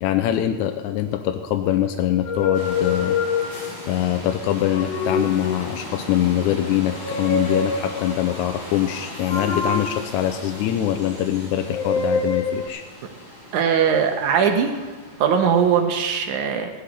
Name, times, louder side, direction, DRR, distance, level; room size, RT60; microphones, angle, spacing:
voice 1, 0.0-3.2 3.9-12.8, left 12 dB, 90° left, 6 dB, 2.0 m, -23 dB
sound 1, 2.2-4.0 4.6-5.9 6.9-8.2 9.3-11.1 11.7-12.7, left 4 dB, 70° left, 1.2 m, -26 dB
sound 2, 2.5-15.8, equal, 15° left, 5.6 m, -38 dB
voice 2, 13.5-14.7 15.2-16.7, right 7 dB, 90° right, 4 dB, 2.6 m, -20 dB
16.5 x 12.0 x 4.3 m, 1.3 s
omnidirectional pair, 3.4 m